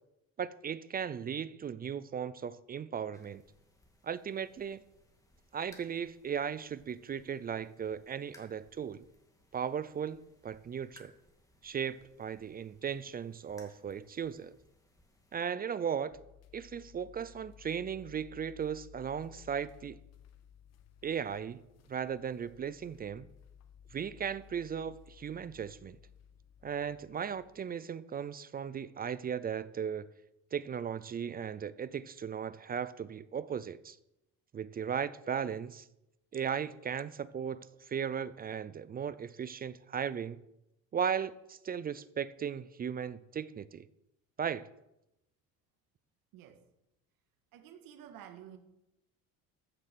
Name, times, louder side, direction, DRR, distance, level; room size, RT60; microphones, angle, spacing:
voice 1, 0.4-3.4 4.0-4.8 5.5-9.0 9.5-11.1 11.6-14.6 15.3-16.1 16.5-20.0 21.0-21.6 21.9-23.3 23.9-26.0 26.6-30.1 30.5-34.0 34.5-35.9 36.3-40.4 40.9-43.9 44.4-44.7, right 7 dB, 25° right, 0.5 m, -37 dB
sound 1, 3.1-15.4, left 1 dB, 10° left, 2.2 m, -64 dB
sound 2, 16.1-27.7, left 9 dB, 50° left, 1.1 m, -57 dB
voice 2, 46.3-46.6 47.5-48.6, right 10 dB, 80° right, 1.8 m, -51 dB
15.0 x 7.5 x 6.7 m
cardioid pair, 140°, 34 cm